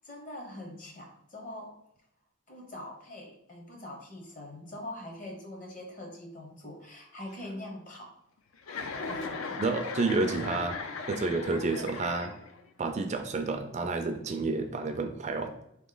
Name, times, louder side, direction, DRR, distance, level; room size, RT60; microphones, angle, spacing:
voice 1, 0.0-1.8 2.5-8.2 8.7-9.6, left 1 dB, 40° left, 2 dB, 0.9 m, -43 dB
Chuckle chortle, 8.6-12.7, left 4 dB, 80° left, 0.5 m, -37 dB
voice 2, 9.6-10.8 11.1-12.3 12.8-15.5, right 3 dB, 35° right, 6 dB, 0.3 m, -30 dB
3.8 x 3.0 x 3.8 m, 0.78 s
head